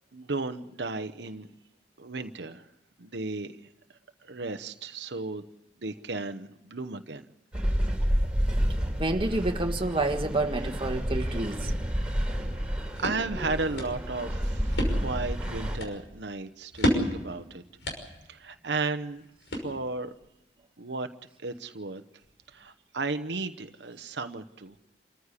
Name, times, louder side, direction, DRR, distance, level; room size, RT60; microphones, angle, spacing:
voice 1, 0.1-1.5 2.0-2.7 3.0-3.5 4.2-5.4 5.8-7.2 12.0-12.6 13.0-17.6 18.3-19.3 19.5-20.1 20.8-21.1 21.4-22.0 22.5-24.8, right 3 dB, 75° right, 0.9 m, -34 dB
sound 1, 7.5-15.8, equal, 5° right, 3.7 m, -29 dB
voice 2, 9.0-11.7, right 2 dB, 30° right, 1.6 m, -28 dB
sound 2, 12.5-20.1, equal, 80° left, 5.8 m, -34 dB
27.5 x 14.5 x 8.3 m
head